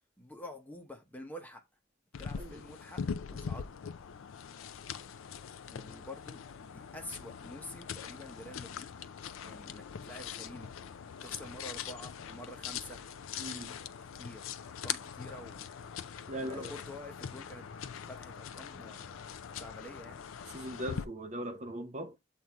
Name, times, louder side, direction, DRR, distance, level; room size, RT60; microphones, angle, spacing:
voice 1, 0.2-1.6 2.2-3.0 3.3-3.6 5.7-8.9 9.4-10.7 11.2-13.0 14.2-14.4 14.8-15.7 16.4-17.7 18.1-19.2 19.5-20.2, left 1 dB, 10° left, 0.9 m, -47 dB
sound 1, 2.1-21.0, left 7 dB, 80° left, 0.4 m, -42 dB
voice 2, 13.4-13.7 16.3-16.8 20.5-22.1, equal, 35° right, 0.8 m, -40 dB
7.7 x 2.7 x 4.6 m
head